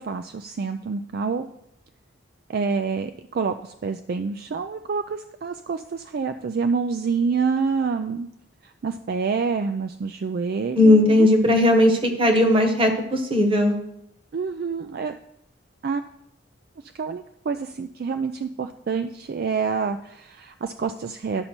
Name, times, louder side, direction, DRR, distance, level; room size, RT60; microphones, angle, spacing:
voice 1, 0.0-1.5 2.5-8.3 8.6-11.3 14.3-15.1 15.8-16.0 16.9-21.5, right 5 dB, 55° right, 8 dB, 0.4 m, -27 dB
voice 2, 10.8-13.7, left 1 dB, 30° right, 5 dB, 1.2 m, -17 dB
11.5 x 5.4 x 4.4 m, 0.75 s
head